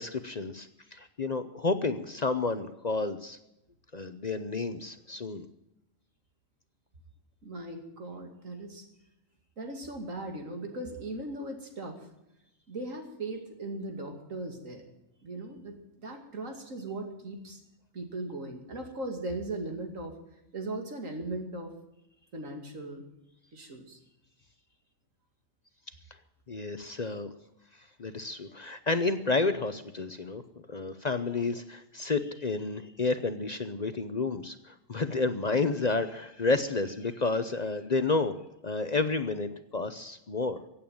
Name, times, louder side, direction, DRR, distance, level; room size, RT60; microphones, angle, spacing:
voice 1, 0.0-3.4 3.9-5.5 26.5-27.3 27.8-30.4 30.7-38.3 38.6-40.6, left 3 dB, 40° left, 10 dB, 0.7 m, -30 dB
voice 2, 7.4-8.8 9.6-12.0 12.7-14.9 15.2-17.6 17.9-20.1 20.5-21.7 22.3-23.0 23.5-24.0, right 2 dB, 80° right, 3 dB, 2.8 m, -38 dB
16.0 x 8.7 x 9.2 m, 0.87 s
omnidirectional pair, 1.4 m